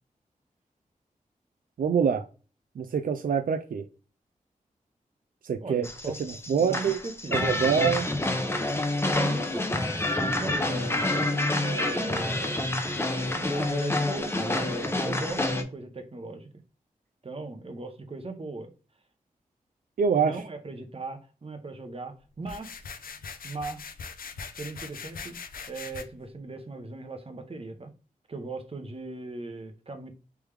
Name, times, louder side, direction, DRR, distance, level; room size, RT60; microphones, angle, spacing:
voice 1, 1.8-2.2 2.8-3.9 5.4-5.9 6.2-7.0 7.3-8.1 20.0-20.3, right 6 dB, 75° right, 0.4 m, -25 dB
voice 2, 5.6-6.2 6.5-8.1 9.1-9.6 10.1-12.6 13.3-16.5 17.2-18.7 20.2-22.9 23.4-23.8 24.5-25.4 25.7-27.9 28.3-30.1, right 3 dB, 40° right, 0.9 m, -38 dB
sound 1, 5.8-15.6, left 2 dB, 15° left, 0.7 m, -28 dB
sound 2, 22.4-26.0, left 5 dB, 85° left, 0.5 m, -41 dB
3.4 x 3.1 x 3.3 m
wide cardioid pair, 70°, 14 cm